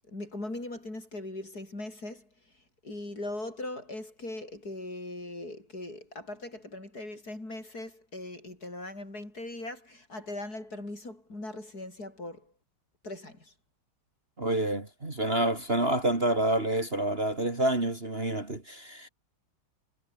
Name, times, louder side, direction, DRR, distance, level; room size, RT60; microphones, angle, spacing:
voice 1, 0.1-12.5 13.0-13.5, left 2 dB, 45° left, 7.9 m, -40 dB
voice 2, 14.4-19.1, right 1 dB, 30° right, 3.2 m, -28 dB
omnidirectional pair, 2.2 m